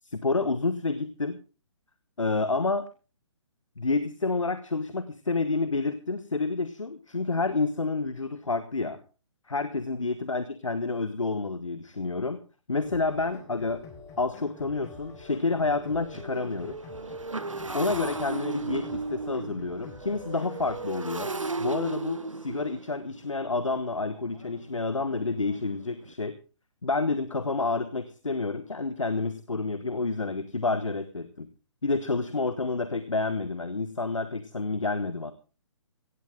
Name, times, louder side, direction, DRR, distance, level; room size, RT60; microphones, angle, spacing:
voice 1, 0.0-1.4 2.2-2.9 3.8-9.0 9.5-12.4 12.7-13.8 14.2-16.8 17.7-21.3 21.6-26.4 26.8-31.5 31.8-35.3, left 3 dB, 85° left, 12 dB, 1.5 m, -29 dB
sound 1, 12.8-20.8, left 4 dB, 20° left, 3.9 m, -48 dB
Motorcycle, 14.1-14.3 14.5-26.1, right 3 dB, 85° right, 1.4 m, -37 dB
17.0 x 15.5 x 3.7 m, 0.34 s
figure-of-eight pair, 135°, 16 cm